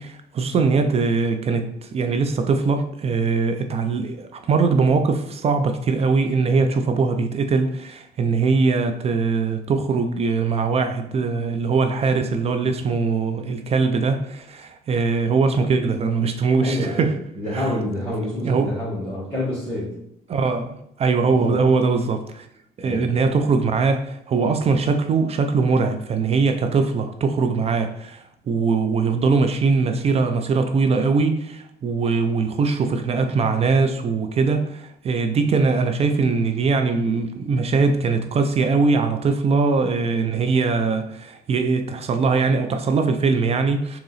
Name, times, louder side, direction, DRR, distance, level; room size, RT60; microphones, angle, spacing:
voice 1, 0.0-17.1 17.5-17.7 18.4-18.7 20.3-22.5 22.8-44.0, right 4 dB, 40° right, 0.4 m, -21 dB
voice 2, 16.6-17.1 17.4-20.0 21.2-21.6 22.8-23.1, left 1 dB, 10° left, 1.7 m, -28 dB
3.8 x 2.9 x 4.0 m
cardioid pair, 110°, 17 cm